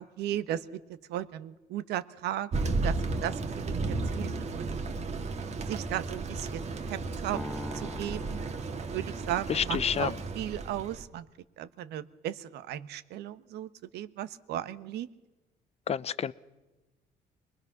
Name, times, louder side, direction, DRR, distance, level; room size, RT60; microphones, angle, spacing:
voice 1, 0.0-4.8 5.7-7.4 7.7-8.5 8.9-11.3 11.6-15.1, right 12 dB, 80° right, 1.2 m, -36 dB
Thunder, 2.5-11.0, right 3 dB, 40° right, 2.0 m, -34 dB
sound 1, 7.3-9.7, equal, ahead, 2.0 m, -42 dB
voice 2, 9.5-10.1 15.9-16.3, left 8 dB, 40° left, 0.8 m, -29 dB
25.5 x 21.0 x 6.0 m
cardioid pair, 110°, 17 cm